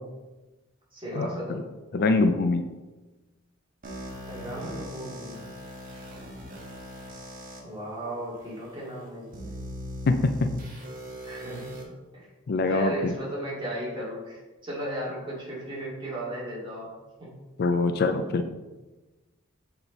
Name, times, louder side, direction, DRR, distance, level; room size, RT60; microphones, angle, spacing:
voice 1, 0.9-1.7 4.3-5.5 7.6-9.6 11.2-12.3 12.7-16.9 17.2-17.4, right 1 dB, 25° right, -6 dB, 2.2 m, -36 dB
voice 2, 1.9-2.6 10.1-10.5 12.5-13.1 17.6-18.5, left 3 dB, 50° left, 8 dB, 0.4 m, -23 dB
sound 1, 3.8-7.6 8.3-8.4 9.3-11.8, equal, 45° right, 1.3 m, -39 dB
7.0 x 4.4 x 3.9 m, 1.2 s
head